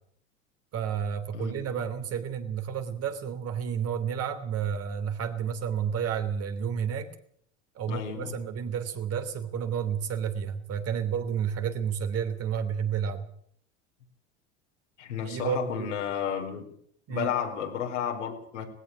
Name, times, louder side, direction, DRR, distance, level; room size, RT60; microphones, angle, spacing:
voice 1, 0.7-7.1 7.7-13.3 15.2-16.0 17.1-17.3, right 7 dB, 40° right, 8 dB, 3.1 m, -31 dB
voice 2, 7.9-8.4 15.0-16.6 17.1-18.7, left 8 dB, 85° left, 2 dB, 4.6 m, -32 dB
19.0 x 16.5 x 8.5 m, 0.64 s
hypercardioid pair, 90°, 35 cm